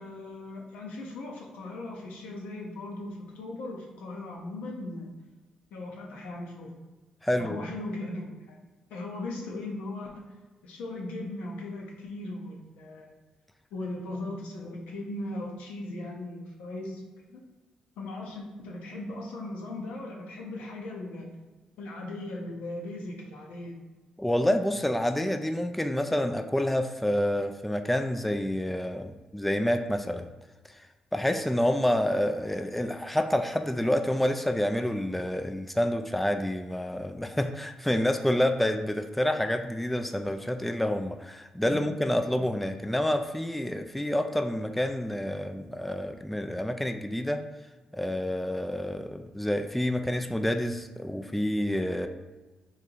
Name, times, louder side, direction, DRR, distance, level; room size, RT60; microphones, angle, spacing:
voice 1, 0.0-5.1 5.7-6.7 7.4-8.6 8.9-10.2 10.6-13.1 13.7-17.0 17.3-17.4 18.0-21.3 21.8-23.7 41.7-41.8 42.4-42.5, left 2 dB, 85° left, -1 dB, 0.7 m, -38 dB
voice 2, 7.2-7.6 24.2-30.3 31.1-47.4 47.9-52.1, left 1 dB, 5° left, 6 dB, 0.3 m, -28 dB
3.1 x 2.7 x 3.8 m, 1.2 s
supercardioid pair, 50°, 2 cm